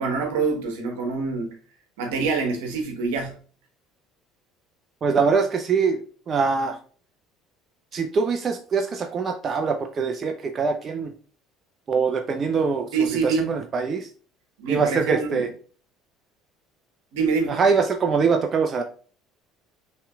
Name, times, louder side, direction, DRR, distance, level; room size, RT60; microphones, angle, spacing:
voice 1, 0.0-1.6 2.0-3.4 12.9-13.5 14.6-15.5 17.1-17.6, right 4 dB, 80° right, 1.1 m, -25 dB
voice 2, 5.0-6.0 6.3-6.8 7.9-11.1 11.9-12.9 13.2-14.1 14.7-15.5 17.5-18.8, right 5 dB, 40° right, 0.6 m, -23 dB
5.6 x 3.2 x 2.3 m
hypercardioid pair, 75°, 0 cm